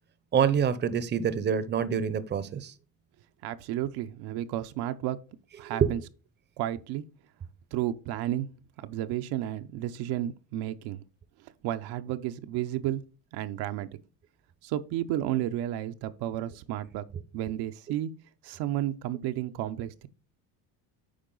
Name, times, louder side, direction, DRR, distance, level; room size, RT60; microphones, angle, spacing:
voice 1, 0.3-2.7 5.7-5.9, right 7 dB, 25° right, 0.7 m, -26 dB
voice 2, 3.4-5.2 5.6-6.0 6.6-7.0 7.7-8.5 8.8-11.0 11.6-13.0 13.3-13.9 14.6-17.0 17.3-18.1 18.4-20.1, right 13 dB, 70° right, 0.7 m, -32 dB
8.7 x 4.7 x 3.8 m
cardioid pair, 120°, 40 cm